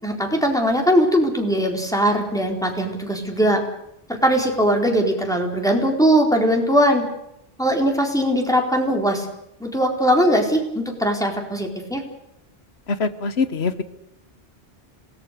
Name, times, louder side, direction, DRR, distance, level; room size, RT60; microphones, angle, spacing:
voice 1, 0.0-3.6 4.1-7.0 7.6-9.3 9.6-12.0, equal, 5° left, 2 dB, 4.3 m, -20 dB
voice 2, 12.9-13.8, left 4 dB, 85° left, 13 dB, 1.5 m, -23 dB
27.0 x 19.0 x 6.8 m, 0.79 s
omnidirectional pair, 1.0 m